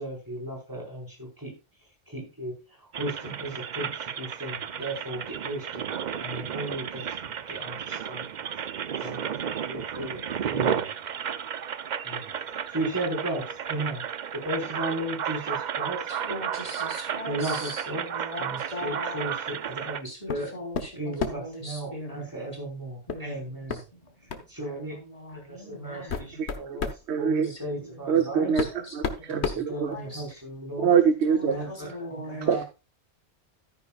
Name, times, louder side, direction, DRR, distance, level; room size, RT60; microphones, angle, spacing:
voice 1, 0.0-1.5 2.1-2.5 3.0-5.9 6.2-7.0 7.5-8.4 9.0-10.9 12.0-12.3 12.7-14.0 14.3-16.1 17.3-18.1 18.4-20.5 21.0-23.8 24.5-25.0 25.3-26.9 27.2-28.5 29.3-30.9 31.4-32.6, right 1 dB, 15° right, 0 dB, 4.8 m, -35 dB
sound 1, 2.9-20.0, right 8 dB, 50° right, 0.6 m, -33 dB
voice 2, 16.1-19.3 20.0-22.3 23.1-23.4 23.7-24.3 24.6-26.3 27.4-29.1 29.4-30.4 31.2-32.5, left 1 dB, 30° left, 1 dB, 4.0 m, -41 dB
sound 2, 20.3-20.5 20.7-21.5 23.1-23.3 23.7-23.8 24.3-24.5 25.3-25.4 25.9-27.0 28.1-28.2 28.6-30.3, left 5 dB, 70° left, 1.4 m, -32 dB
voice 3, 26.3-26.8 27.1-27.5 28.1-30.0 30.8-31.5 31.9-32.0 32.4-32.6, right 7 dB, 70° right, 9 dB, 1.1 m, -25 dB
13.0 x 10.0 x 2.4 m, 0.29 s
omnidirectional pair, 1.2 m